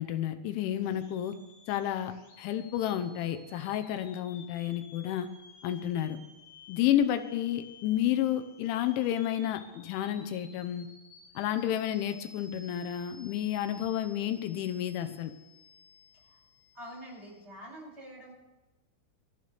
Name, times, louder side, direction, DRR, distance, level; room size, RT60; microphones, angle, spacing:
voice 1, 0.0-1.3 1.7-5.3 5.6-6.2 6.7-10.9 11.4-15.3, left 11 dB, 85° left, 8 dB, 3.3 m, -31 dB
sound 1, 0.7-17.4, left 4 dB, 70° left, 4.3 m, -55 dB
voice 2, 16.7-18.3, equal, 15° right, -5 dB, 6.6 m, -46 dB
25.0 x 14.0 x 3.5 m, 1.1 s
omnidirectional pair, 5.3 m